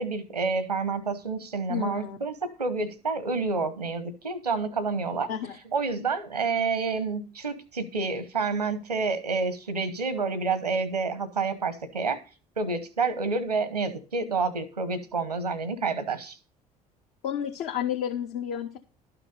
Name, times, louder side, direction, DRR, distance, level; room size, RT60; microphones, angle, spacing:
voice 1, 0.0-5.3 5.7-12.2 12.6-16.4, right 4 dB, 85° right, 1.0 m, -29 dB
voice 2, 1.7-2.2 5.3-5.6 17.2-18.8, left 9 dB, 55° left, 1.1 m, -31 dB
12.0 x 5.9 x 5.2 m
figure-of-eight pair, 55°, 20 cm